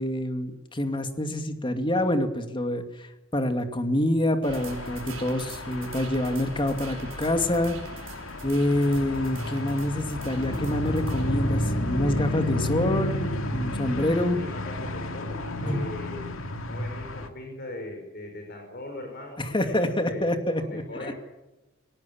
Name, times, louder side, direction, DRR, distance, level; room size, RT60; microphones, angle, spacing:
voice 1, 0.0-7.8 8.4-14.4 15.7-15.8 19.4-21.1, left 1 dB, 25° left, 7 dB, 2.5 m, -26 dB
sound 1, 4.4-11.3, right 7 dB, 70° right, 4.4 m, -46 dB
sound 2, 4.5-17.3, left 1 dB, 80° left, 2.4 m, -31 dB
voice 2, 14.3-16.3 16.7-20.3 20.5-21.1, left 1 dB, 50° left, 3 dB, 5.4 m, -39 dB
21.5 x 19.0 x 8.9 m, 1.0 s
head